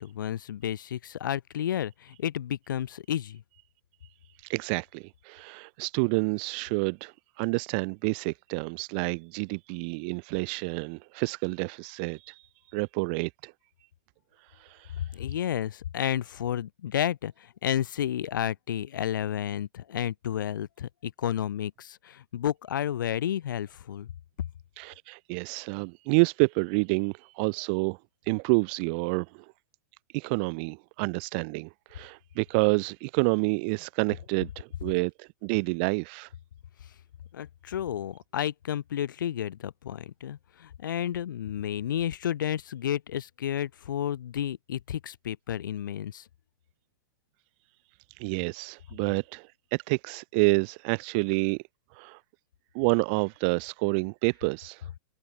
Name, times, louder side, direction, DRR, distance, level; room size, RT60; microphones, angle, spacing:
voice 1, 0.0-3.4 15.0-24.1 37.3-46.3, left 10 dB, 80° left, 1.1 m, -31 dB
voice 2, 4.5-12.5 12.7-13.5 14.5-15.0 24.8-28.0 28.3-29.5 30.1-36.3 48.2-51.6 51.9-52.2 52.7-54.9, right 35 dB, 30° right, 0.3 m, -28 dB
hypercardioid pair, 160°, 10 cm